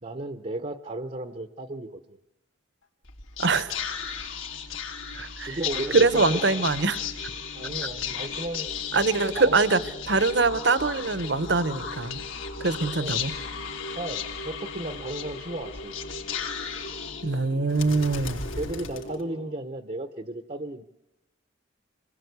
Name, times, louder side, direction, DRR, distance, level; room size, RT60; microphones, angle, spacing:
voice 1, 0.0-2.0 5.5-6.6 7.5-8.7 9.4-9.6 13.0-13.1 13.9-15.9 18.6-20.8, right 2 dB, 35° right, 7 dB, 0.9 m, -34 dB
Whispering, 3.0-19.6, left 6 dB, 85° left, 3.5 m, -35 dB
voice 2, 3.4-3.8 5.1-5.6 5.9-7.0 8.9-9.8 10.1-12.2 12.6-13.3 17.2-18.4, right 3 dB, 60° right, 13 dB, 1.2 m, -23 dB
26.5 x 20.0 x 8.2 m, 0.93 s
head